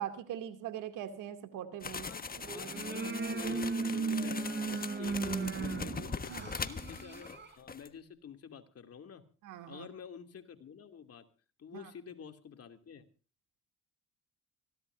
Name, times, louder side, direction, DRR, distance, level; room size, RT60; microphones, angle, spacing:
voice 1, 0.0-2.1 6.3-6.5 9.4-9.9 11.7-11.9, right 10 dB, 90° right, 8 dB, 2.7 m, -41 dB
sound 1, 1.8-7.4 7.7-7.9, left 5 dB, 30° left, 1.4 m, -41 dB
voice 2, 2.0-4.4 4.7-9.2 9.7-11.3 11.6-13.1, left 7 dB, 55° left, 6 dB, 2.8 m, -49 dB
sound 2, 2.3-7.5, right 4 dB, 35° right, 3.6 m, -36 dB
25.0 x 16.0 x 2.6 m, 0.37 s
cardioid pair, 90°, 30 cm